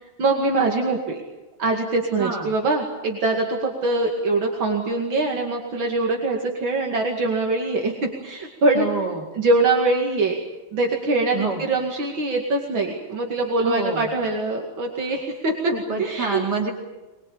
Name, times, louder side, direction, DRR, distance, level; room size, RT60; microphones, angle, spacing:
voice 1, 0.2-1.2 1.6-8.9 9.3-10.4 10.7-15.7 16.0-16.4, right 2 dB, 75° right, 0 dB, 3.1 m, -23 dB
voice 2, 2.2-2.5 8.7-9.3 11.3-11.7 13.6-14.1 15.7-16.7, right 3 dB, 55° right, 1 dB, 3.1 m, -27 dB
23.0 x 22.5 x 8.7 m, 1.1 s
omnidirectional pair, 2.2 m